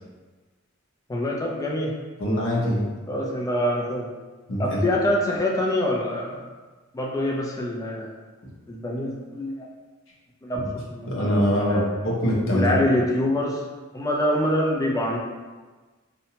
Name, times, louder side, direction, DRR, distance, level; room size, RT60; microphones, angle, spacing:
voice 1, 1.1-1.9 3.1-4.1 4.6-6.5 6.9-8.1 8.7-9.7 10.4-11.9 12.5-13.6 13.9-15.2, left 1 dB, 15° left, -2 dB, 0.4 m, -25 dB
voice 2, 2.2-2.9 4.5-4.8 10.5-10.7 11.0-12.7, equal, 65° left, -4 dB, 0.7 m, -23 dB
2.8 x 2.1 x 2.8 m, 1.3 s
head